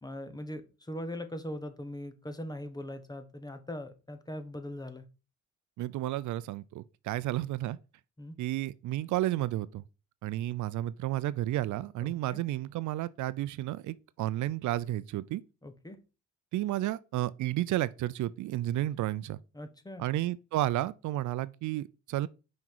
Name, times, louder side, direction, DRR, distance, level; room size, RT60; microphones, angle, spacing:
voice 1, 0.0-5.0 8.2-8.3 12.0-12.4 15.6-16.0 19.5-20.1, left 1 dB, 15° left, 1.1 m, -41 dB
voice 2, 5.8-7.8 8.4-9.8 10.2-15.4 16.5-19.4 20.0-22.3, right 15 dB, 75° right, 0.5 m, -32 dB
5.8 x 5.3 x 4.6 m
cardioid pair, 90°, 30 cm